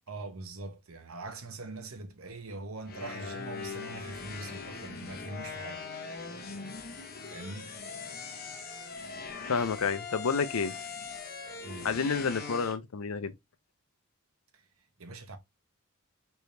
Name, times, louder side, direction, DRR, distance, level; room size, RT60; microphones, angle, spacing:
voice 1, 0.0-5.8 7.3-7.8 9.6-9.7 11.6-12.1 15.0-15.4, right 2 dB, 80° right, 1.0 m, -42 dB
sound 1, 2.9-12.8, left 5 dB, 50° left, 1.0 m, -41 dB
voice 2, 9.5-10.7 11.8-13.3, left 5 dB, 90° left, 0.6 m, -29 dB
4.5 x 3.4 x 2.7 m
head